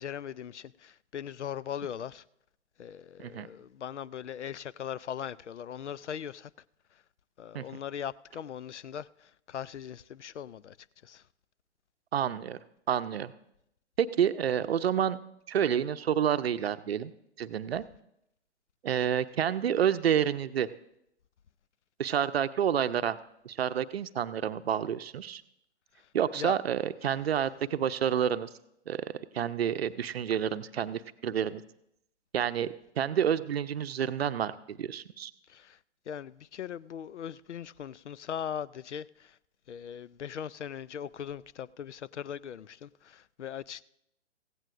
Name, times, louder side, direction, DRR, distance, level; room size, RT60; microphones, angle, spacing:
voice 1, 0.0-2.2 2.8-6.5 6.9-7.0 7.4-10.8 11.0-11.2 25.9-26.6 35.5-35.8 36.1-39.4 39.7-43.8, left 9 dB, 75° left, 0.5 m, -40 dB
voice 2, 12.1-12.6 12.9-13.3 14.0-15.2 15.5-17.1 17.4-17.8 18.8-20.7 22.0-23.2 23.4-25.4 26.1-28.5 28.9-31.6 32.3-35.3, right 9 dB, 60° right, 0.7 m, -29 dB
16.0 x 16.0 x 2.5 m
figure-of-eight pair, 125°, 35 cm